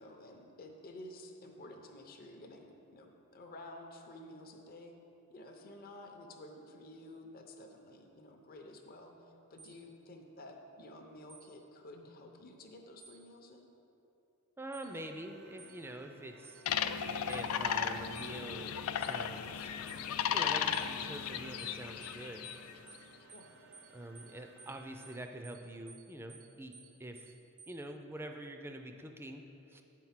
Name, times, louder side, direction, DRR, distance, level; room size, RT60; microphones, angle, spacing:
voice 1, 0.0-4.9 5.3-13.7 23.3-23.5, left 1 dB, 45° left, 2 dB, 0.6 m, -51 dB
sound 1, 9.6-9.8 11.3-11.5 13.0-13.2 14.7-14.9 15.6-15.8 16.4-16.6 17.3-17.5 18.2-18.3 19.0-19.2 19.9-20.0 20.7-20.9 21.6-21.8 22.0-22.2 22.4-22.6 22.9-23.0 23.3-23.5 23.7-23.9 24.2-24.3 24.6-24.8 25.0-25.2 25.4-25.6 25.9-26.0 26.3-26.5 26.7-26.9 27.2-27.3 27.6-27.7, right 5 dB, 80° right, 0.9 m, -55 dB
voice 2, 14.6-16.6 17.2-19.7 20.3-22.5 23.9-26.7 27.0-27.3 27.7-29.4 29.7-29.8, right 1 dB, 10° right, 5 dB, 0.4 m, -45 dB
sound 2, 14.8-25.2, right 2 dB, 55° right, 0.6 m, -59 dB
sound 3, 16.7-22.7, left 8 dB, 85° left, 0.3 m, -35 dB
8.0 x 4.6 x 5.7 m, 2.8 s
head